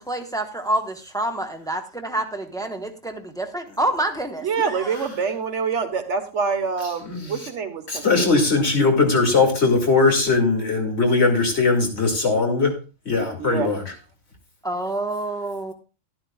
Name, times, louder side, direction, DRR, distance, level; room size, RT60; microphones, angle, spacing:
voice 1, 0.0-5.0 14.6-15.7, right 1 dB, 5° left, 4 dB, 1.0 m, -27 dB
voice 2, 4.4-8.3 13.4-13.7, right 5 dB, 65° right, 7 dB, 1.5 m, -26 dB
voice 3, 7.0-7.5 7.9-12.7 13.1-13.8, left 3 dB, 55° left, 2 dB, 2.6 m, -20 dB
12.0 x 12.0 x 2.3 m, 0.33 s
omnidirectional pair, 1.3 m